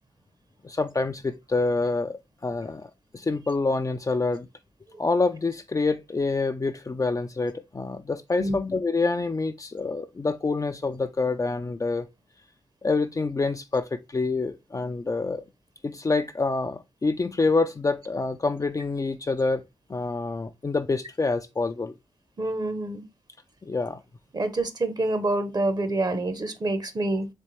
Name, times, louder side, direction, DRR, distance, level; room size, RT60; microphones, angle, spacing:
voice 1, 0.6-4.5 5.0-12.1 12.8-15.4 15.8-19.6 19.9-21.9 23.6-24.0, left 3 dB, 30° left, 0.4 m, -27 dB
voice 2, 22.4-23.0 24.3-27.3, right 2 dB, 35° right, 0.9 m, -27 dB
4.2 x 3.4 x 3.2 m
supercardioid pair, 45°, 11 cm